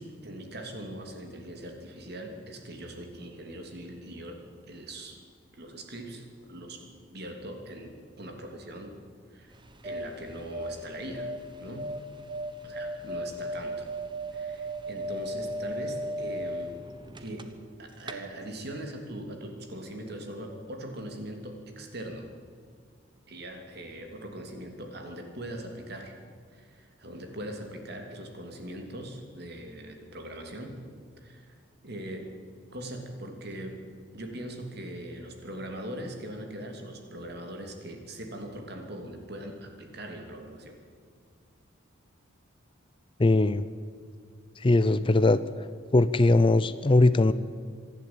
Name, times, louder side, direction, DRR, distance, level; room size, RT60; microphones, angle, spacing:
voice 1, 0.0-4.4 4.7-5.2 5.5-8.9 9.3-9.5 9.8-11.3 11.6-11.9 12.6-13.9 14.3-16.7 17.2-17.4 17.8-22.3 23.3-26.1 26.5-30.8 31.2-31.6 31.8-32.3 32.7-33.8 34.1-40.8, right 1 dB, 55° right, 4 dB, 2.9 m, -41 dB
sound 1, 9.5-17.7 18.0-18.1, right 1 dB, 25° right, 1.1 m, -36 dB
voice 2, 43.2-43.6 44.6-45.4 45.9-47.3, left 2 dB, 25° left, 15 dB, 0.5 m, -20 dB
25.5 x 11.5 x 8.9 m, 2.1 s
head